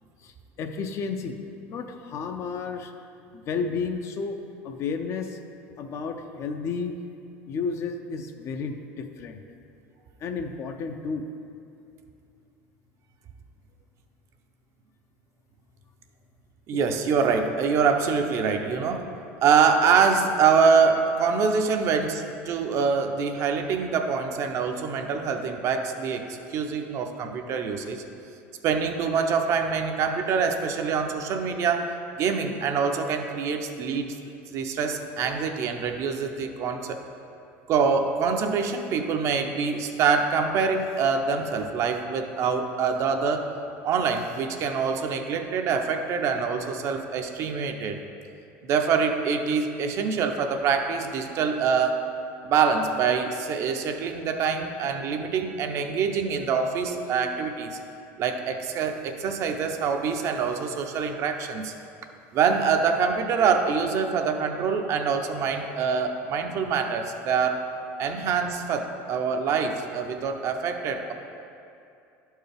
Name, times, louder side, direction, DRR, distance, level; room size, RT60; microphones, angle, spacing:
voice 1, 0.2-1.4 1.7-2.9 3.3-4.4 4.6-5.4 5.8-7.0 7.5-9.4 10.2-11.3, left 5 dB, 45° left, 6 dB, 0.5 m, -32 dB
voice 2, 16.7-19.1 19.4-28.0 28.6-34.2 34.5-37.0 37.7-43.5 43.8-48.0 48.6-52.0 52.4-57.8 58.2-61.7 62.3-67.6 68.0-71.1, right 5 dB, 50° right, 5 dB, 0.6 m, -25 dB
11.0 x 4.6 x 3.4 m, 2.5 s
supercardioid pair, 115°, 6 cm